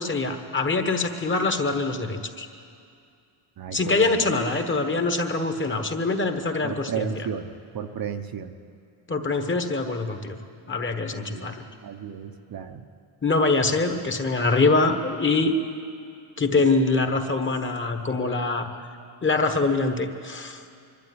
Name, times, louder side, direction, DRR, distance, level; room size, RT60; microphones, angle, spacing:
voice 1, 0.0-2.5 3.7-7.3 9.1-10.4 10.7-11.5 13.2-15.6 16.4-18.7 19.2-20.6, left 3 dB, 25° left, 6 dB, 1.4 m, -24 dB
voice 2, 3.6-4.1 6.6-8.5 11.3-11.5 11.8-12.8, right 8 dB, 45° right, 6 dB, 0.9 m, -33 dB
24.0 x 12.0 x 9.7 m, 2.4 s
cardioid pair, 140°, 50 cm